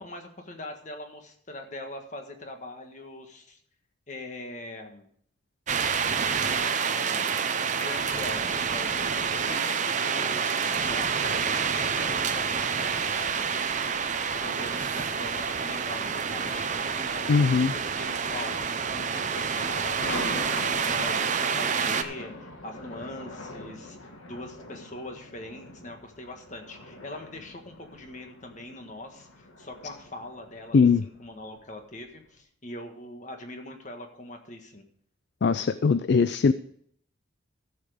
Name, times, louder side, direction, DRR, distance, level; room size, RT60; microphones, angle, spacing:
voice 1, 0.0-3.6 4.1-5.1 6.3-7.4 7.8-34.8, left 2 dB, 35° left, 4 dB, 1.6 m, -42 dB
sound 1, 5.7-22.0, right 6 dB, 35° right, 0.6 m, -28 dB
voice 2, 17.3-17.7 30.7-31.0 35.4-36.5, left 5 dB, 55° left, 13 dB, 0.3 m, -20 dB
sound 2, 20.0-32.2, left 2 dB, 85° left, 2.0 m, -42 dB
13.0 x 7.2 x 5.0 m, 0.64 s
head